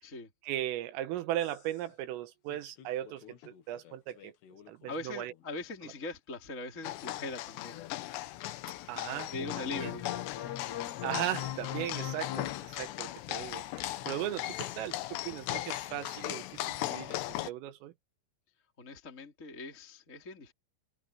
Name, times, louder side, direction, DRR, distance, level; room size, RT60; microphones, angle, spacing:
voice 1, 0.4-4.3 4.7-5.3 8.9-9.3 9.6-9.9 11.0-17.9, right 13 dB, 80° right, 3.7 m, -37 dB
sound 1, 1.4-1.6 1.9-2.0 2.5-5.6 6.8-7.3 9.3-12.6, left 12 dB, 65° left, 3.4 m, -41 dB
voice 2, 4.9-7.8 9.0-10.1 18.8-20.5, left 2 dB, 15° left, 3.2 m, -41 dB
sound 2, 6.8-17.5, left 16 dB, 80° left, 2.6 m, -38 dB
omnidirectional pair, 6.0 m